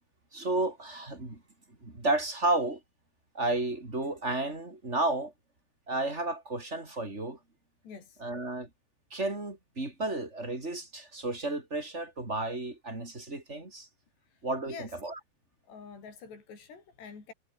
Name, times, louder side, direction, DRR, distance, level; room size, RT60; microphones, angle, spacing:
voice 1, 0.3-1.4 1.8-2.8 3.3-5.3 5.9-7.4 8.2-8.7 9.1-13.9 14.4-15.1, right 2 dB, 15° right, 4.5 m, -32 dB
voice 2, 7.8-8.2 14.2-14.9 15.6-17.3, left 5 dB, 75° left, 8.2 m, -47 dB
omnidirectional pair, 4.9 m